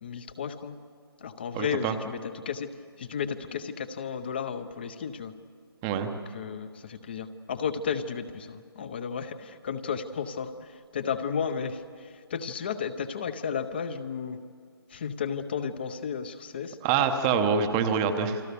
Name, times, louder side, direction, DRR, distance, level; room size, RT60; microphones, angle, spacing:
voice 1, 0.0-0.8 1.2-2.7 3.0-5.3 6.3-14.4 14.9-16.8, left 6 dB, 25° left, 11 dB, 0.7 m, -33 dB
voice 2, 1.5-1.9 5.8-6.1 16.8-18.4, right 6 dB, 10° right, 7 dB, 0.8 m, -25 dB
28.5 x 22.5 x 6.8 m, 2.2 s
hypercardioid pair, 165°, 13 cm